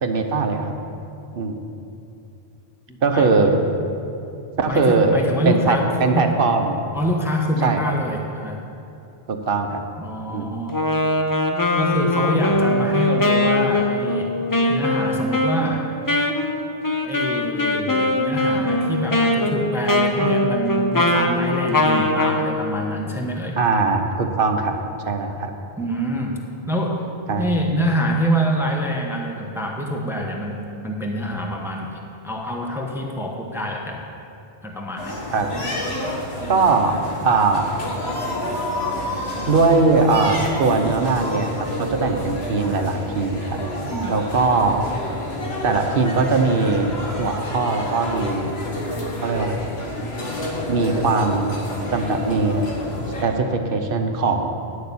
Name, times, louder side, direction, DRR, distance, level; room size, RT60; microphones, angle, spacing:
voice 1, 0.0-0.7 1.3-1.6 3.0-3.6 4.6-5.2 5.4-6.8 7.6-7.8 9.3-9.8 10.3-10.5 23.6-24.8 25.0-25.5 27.3-27.5 35.3-35.5 36.5-37.7 39.5-43.6 44.1-44.8 45.6-46.9 47.2-48.5 49.2-49.6 50.7-51.5 51.9-52.6 53.2-54.5, right 3 dB, 60° right, 5 dB, 1.1 m, -20 dB
voice 2, 2.9-3.3 4.7-6.4 6.9-8.6 10.0-10.8 11.8-14.4 14.7-15.9 17.1-23.6 25.8-26.4 26.7-27.0 27.3-34.0 34.6-35.2 43.9-44.2, equal, 5° right, 0 dB, 0.9 m, -26 dB
Wind instrument woodwind instrument, 10.7-22.5, left 1 dB, 20° left, 0.7 m, -21 dB
sound 1, 35.0-53.2, left 1 dB, 80° left, 1.8 m, -29 dB
10.5 x 6.5 x 8.4 m, 2.8 s
omnidirectional pair, 1.0 m